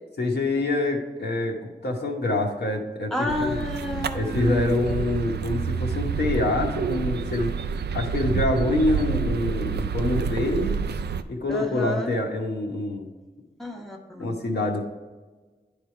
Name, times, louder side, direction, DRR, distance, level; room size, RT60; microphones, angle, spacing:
voice 1, 0.2-3.6 4.1-7.5 7.9-10.8 11.3-13.1 14.2-14.8, left 2 dB, 70° left, 0 dB, 1.2 m, -26 dB
voice 2, 3.1-4.8 11.5-12.1 13.6-14.4, left 1 dB, ahead, 1 dB, 1.1 m, -30 dB
sound 1, 3.3-11.2, right 6 dB, 70° right, 0.4 m, -28 dB
9.9 x 3.4 x 4.6 m, 1.3 s
cardioid pair, 40°, 18 cm